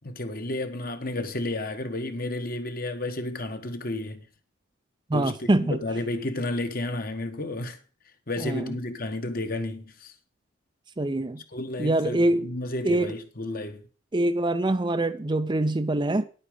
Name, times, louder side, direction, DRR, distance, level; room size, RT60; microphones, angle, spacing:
voice 1, 0.0-4.3 5.1-7.8 8.3-10.1 11.5-13.8, left 2 dB, 45° left, 1.3 m, -32 dB
voice 2, 5.1-5.8 8.4-8.7 11.0-11.4 11.8-12.5 12.8-13.1 14.1-16.2, right 1 dB, 20° right, 0.5 m, -24 dB
10.5 x 8.4 x 5.1 m
head